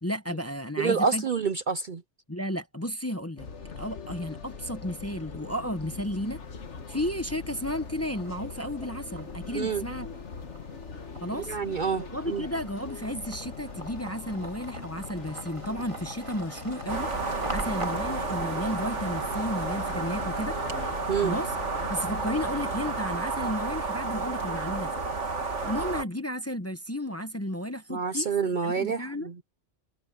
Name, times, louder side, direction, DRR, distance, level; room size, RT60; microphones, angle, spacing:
voice 1, 0.0-1.3 2.3-3.5 3.8-6.4 6.9-10.1 11.2-11.6 12.0-20.6 21.2-21.5 21.9-24.9 25.6-28.3 28.6-29.3, equal, 15° left, 0.8 m, -33 dB
voice 2, 0.8-2.0 9.5-9.8 11.5-12.4 21.1-21.4 27.9-29.3, right 5 dB, 50° right, 0.7 m, -28 dB
sound 1, 3.4-23.0, left 5 dB, 70° left, 1.7 m, -42 dB
sound 2, 6.2-6.9 7.3-20.8, right 2 dB, 25° right, 2.2 m, -45 dB
sound 3, 16.9-26.0, right 3 dB, 80° right, 2.6 m, -31 dB
omnidirectional pair, 1.2 m